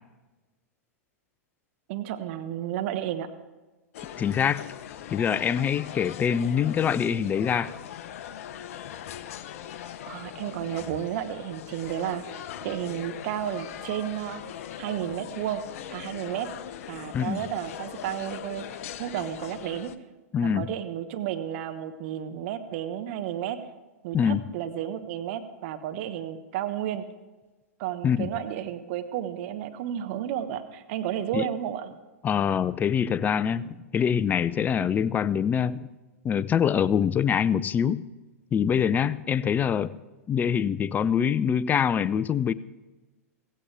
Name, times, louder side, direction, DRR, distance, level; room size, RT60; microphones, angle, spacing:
voice 1, 1.9-3.3 10.1-14.4 14.8-15.6 15.9-16.5 16.9-18.6 19.0-19.9 20.4-23.6 24.0-27.0 27.8-31.9, right 11 dB, 50° right, 9 dB, 1.2 m, -32 dB
sound 1, 3.9-20.0, left 10 dB, 60° left, 0.8 m, -40 dB
voice 2, 4.2-4.6 5.1-7.7 17.1-17.4 20.3-20.7 24.1-24.4 28.0-28.3 31.3-31.5 32.2-35.9 36.2-38.1 38.5-39.9 40.3-42.5, left 8 dB, 20° left, 18 dB, 0.4 m, -24 dB
16.5 x 16.0 x 3.4 m, 1.2 s
hypercardioid pair, 110°, 9 cm